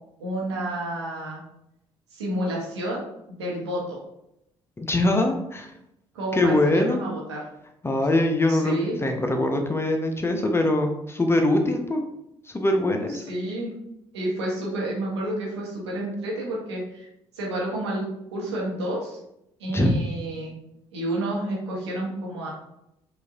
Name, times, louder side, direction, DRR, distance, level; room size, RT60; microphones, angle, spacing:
voice 1, 0.2-1.4 2.1-3.1 3.4-4.0 6.1-7.4 8.5-9.0 13.3-13.7 14.1-17.1 17.3-19.2 19.6-20.5 20.9-22.5, right 1 dB, 80° right, -3 dB, 1.0 m, -30 dB
voice 2, 4.8-5.7 6.3-7.0 7.8-12.0 12.5-13.2 19.7-19.9, left 1 dB, 15° left, 4 dB, 0.6 m, -23 dB
4.7 x 2.5 x 2.5 m, 0.80 s
figure-of-eight pair, 45°, 14 cm